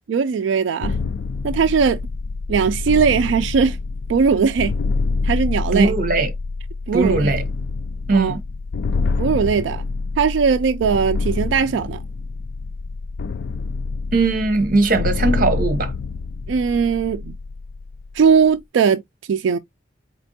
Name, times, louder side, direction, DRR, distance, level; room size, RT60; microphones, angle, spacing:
voice 1, 0.1-1.0 1.4-2.0 2.5-3.8 4.1-4.7 5.2-5.9 6.9-7.3 8.1-8.4 9.2-9.8 10.2-12.0 16.5-17.4 18.1-19.0 19.3-19.6, right 6 dB, 90° right, 0.4 m, -19 dB
sound 1, 0.8-18.5, left 4 dB, 65° left, 0.3 m, -26 dB
voice 2, 5.7-6.3 6.9-7.4 8.1-8.4 14.1-15.9, right 3 dB, 50° right, 1.0 m, -19 dB
4.3 x 2.9 x 2.7 m
head